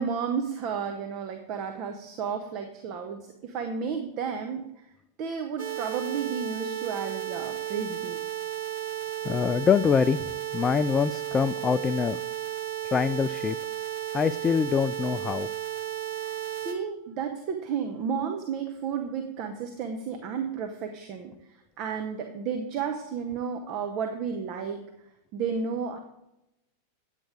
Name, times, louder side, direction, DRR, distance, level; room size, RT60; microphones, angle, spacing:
voice 1, 0.0-4.9 5.2-8.2 16.1-24.8 25.3-26.0, right 6 dB, 40° right, 5 dB, 1.0 m, -32 dB
sound 1, 5.6-16.7, right 12 dB, 55° right, 1.6 m, -34 dB
voice 2, 9.2-12.2 12.8-13.6 14.1-15.5, left 6 dB, 20° left, 11 dB, 0.3 m, -24 dB
9.0 x 8.4 x 5.0 m, 0.87 s
figure-of-eight pair, 90°, 0 cm